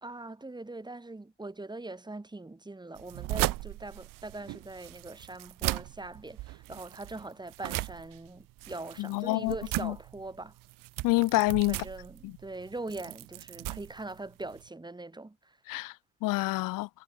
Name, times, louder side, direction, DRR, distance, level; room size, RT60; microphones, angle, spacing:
voice 1, 0.0-10.5 11.7-15.6, right 2 dB, 15° right, 2.2 m, -42 dB
sound 1, 2.9-14.7, right 19 dB, 80° right, 1.6 m, -37 dB
voice 2, 9.0-9.5 9.8-9.9 11.0-11.8 12.2-12.3 15.7-15.9 16.2-16.9, left 20 dB, 75° left, 1.0 m, -27 dB
supercardioid pair, 70°, 33 cm